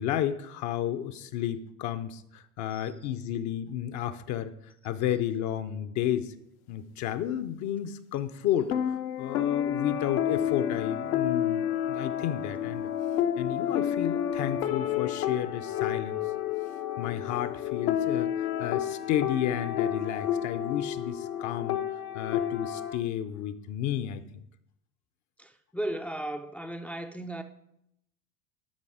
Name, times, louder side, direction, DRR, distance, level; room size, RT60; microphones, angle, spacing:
voice 1, 0.0-6.3 6.7-12.9 13.4-16.2 17.0-21.8 22.1-24.4, left 11 dB, 40° left, 0.7 m, -32 dB
sound 1, 8.6-23.0, left 10 dB, 70° left, 0.9 m, -30 dB
voice 2, 25.4-27.4, right 1 dB, 5° left, 0.5 m, -35 dB
12.5 x 5.3 x 4.9 m
figure-of-eight pair, 80°, 45 cm